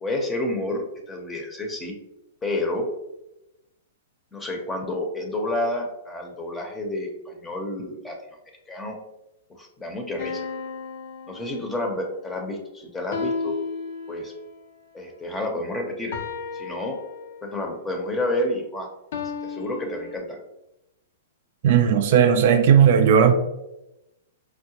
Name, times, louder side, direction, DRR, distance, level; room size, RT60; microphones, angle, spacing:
voice 1, 0.0-1.9 2.4-2.9 4.3-8.2 8.7-9.0 9.5-10.5 11.3-13.5 14.1-14.3 14.9-16.2 16.5-17.0 17.4-18.9 19.4-20.4, left 1 dB, 10° left, 2 dB, 0.6 m, -29 dB
sound 1, 10.2-12.0 13.1-14.6 16.1-17.7 19.1-20.2, left 5 dB, 60° left, 0.4 m, -33 dB
voice 2, 21.6-23.3, right 8 dB, 60° right, 7 dB, 0.3 m, -16 dB
4.7 x 2.1 x 2.8 m, 0.92 s
hypercardioid pair, 130°, 0 cm